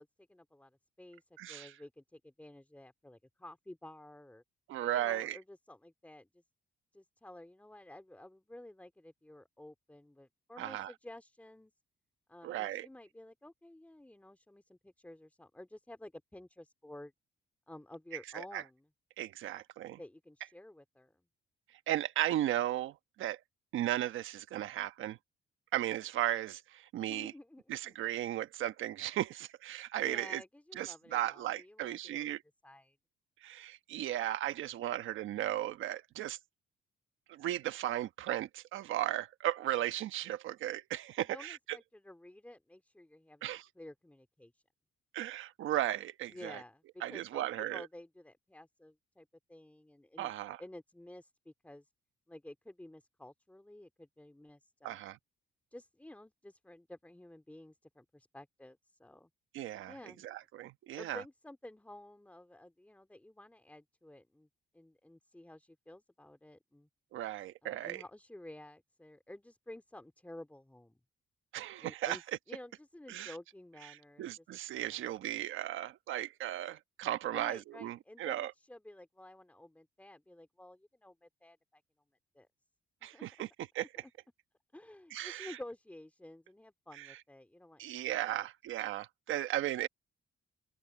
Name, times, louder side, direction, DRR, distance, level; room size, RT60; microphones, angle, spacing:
voice 1, 0.0-1.2 1.5-4.4 4.8-6.4 6.9-11.7 12.3-17.1 17.7-18.8 20.0-21.1 27.0-27.9 30.0-32.3 32.6-33.0 41.2-44.6 46.3-50.3 50.6-51.9 52.3-55.0 55.7-59.3 59.9-60.2 60.9-64.5 64.7-66.9 67.6-71.0 71.8-72.2 72.5-74.4 74.8-75.0 77.2-81.8 82.3-82.5 83.0-83.4 84.0-84.1 84.7-88.5, left 1 dB, 5° left, 2.7 m, -52 dB
voice 2, 1.4-1.7 4.7-5.4 10.6-10.9 12.4-12.9 18.3-18.6 19.2-20.0 21.9-23.4 23.7-25.2 25.7-27.3 27.7-30.4 30.8-32.4 33.4-36.4 37.3-41.6 43.4-43.7 45.1-46.6 47.0-47.9 50.2-50.6 54.8-55.2 59.5-59.9 60.2-61.2 67.1-68.0 71.5-72.2 73.1-73.3 73.9-78.5 83.0-83.5 83.7-83.9 85.1-85.6 86.9-87.2 87.8-89.9, right 13 dB, 80° right, 1.2 m, -36 dB
open air
cardioid pair, 90°, 20 cm